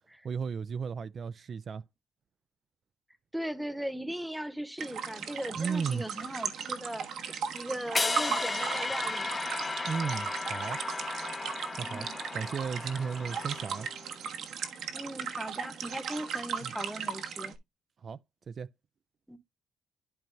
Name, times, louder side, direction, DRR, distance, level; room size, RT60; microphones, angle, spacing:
voice 1, 0.2-1.8 5.5-6.0 9.9-10.8 11.8-12.1 12.3-13.9 16.6-16.7 18.0-18.2 18.5-18.7, right 6 dB, 50° right, 0.4 m, -34 dB
voice 2, 3.3-9.5 11.8-12.2 14.9-17.5 19.3-19.4, equal, 5° right, 1.0 m, -38 dB
Small stream in forest, 4.8-17.6, right 7 dB, 75° right, 1.3 m, -37 dB
sound 1, 7.9-14.1, left 3 dB, 25° left, 0.5 m, -34 dB
12.0 x 4.5 x 2.6 m
cardioid pair, 90°, 0 cm